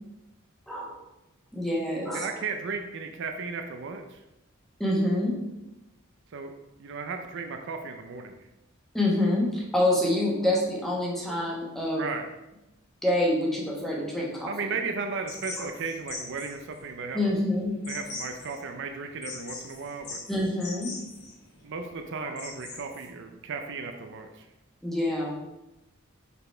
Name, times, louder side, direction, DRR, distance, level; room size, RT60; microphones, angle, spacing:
voice 1, 1.5-2.3 4.8-5.4 8.9-12.0 13.0-14.5 15.6-15.7 17.1-17.8 20.3-20.9 22.2-22.3 24.8-25.3, left 1 dB, ahead, -4 dB, 1.3 m, -26 dB
voice 2, 2.1-4.2 6.3-6.5 6.8-8.3 12.0-12.3 14.5-17.3 17.9-20.2 21.6-24.4, right 4 dB, 60° right, 5 dB, 0.5 m, -35 dB
sound 1, 15.3-23.1, left 3 dB, 50° left, 2.3 m, -42 dB
5.5 x 4.1 x 4.4 m, 0.94 s
head